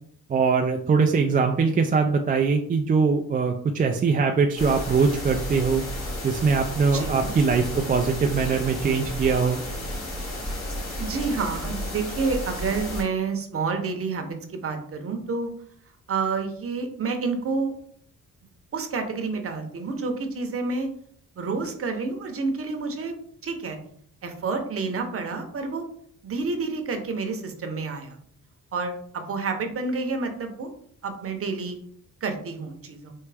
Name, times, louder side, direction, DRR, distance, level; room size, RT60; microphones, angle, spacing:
voice 1, 0.3-5.8 6.2-9.6, right 5 dB, 25° right, 4 dB, 0.3 m, -22 dB
sound 1, 4.6-13.0, left 1 dB, 55° left, 1.9 m, -32 dB
voice 2, 6.9-7.3 11.0-15.5 16.1-17.7 18.7-20.9 21.4-23.1 23.4-23.8 24.2-25.8 26.2-28.2 28.7-30.7 31.0-31.8 32.2-33.1, right 4 dB, 45° right, 5 dB, 0.9 m, -29 dB
4.6 x 3.1 x 3.3 m, 0.62 s
cardioid pair, 115°, 32 cm